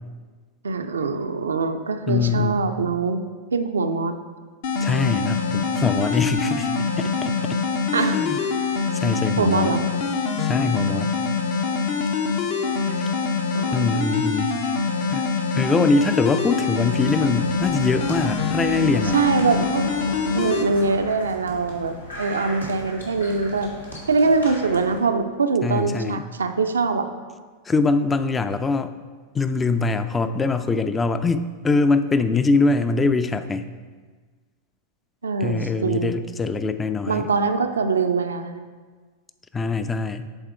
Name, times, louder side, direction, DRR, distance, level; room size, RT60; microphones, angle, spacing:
voice 1, 0.6-3.2 3.5-4.2 7.9-8.2 9.4-9.8 13.5-13.7 19.0-19.9 20.3-23.7 24.1-27.1 35.2-36.1 37.1-38.6, right 4 dB, 70° right, 7 dB, 0.4 m, -23 dB
voice 2, 2.1-2.7 4.8-6.7 7.0-7.6 8.1-8.4 8.9-9.7 10.4-11.1 13.7-14.5 15.1-15.3 15.5-19.2 25.6-26.2 27.7-28.9 29.3-33.7 35.4-37.3 39.5-40.3, left 3 dB, 15° left, 11 dB, 0.3 m, -23 dB
sound 1, 4.6-20.6, left 5 dB, 50° left, 0.6 m, -24 dB
sound 2, 16.9-25.0, equal, 85° left, 1.4 m, -38 dB
8.0 x 3.6 x 4.5 m, 1.5 s
figure-of-eight pair, 90°, 0 cm